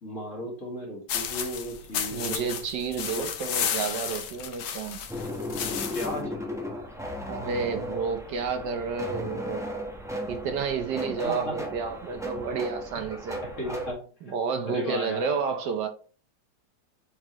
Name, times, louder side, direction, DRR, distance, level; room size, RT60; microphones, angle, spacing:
voice 1, 0.0-2.5 3.1-3.3 5.9-6.3 11.2-11.6 13.4-14.3 14.6-15.3, equal, 40° left, 2.4 m, -35 dB
sound 1, 1.1-6.2, left 8 dB, 85° left, 1.7 m, -33 dB
voice 2, 2.1-5.0 7.3-9.7 10.3-13.4 14.3-15.9, right 5 dB, 70° right, 1.3 m, -30 dB
sound 2, 5.1-13.9, equal, 5° right, 0.6 m, -35 dB
7.5 x 4.3 x 2.9 m
omnidirectional pair, 2.1 m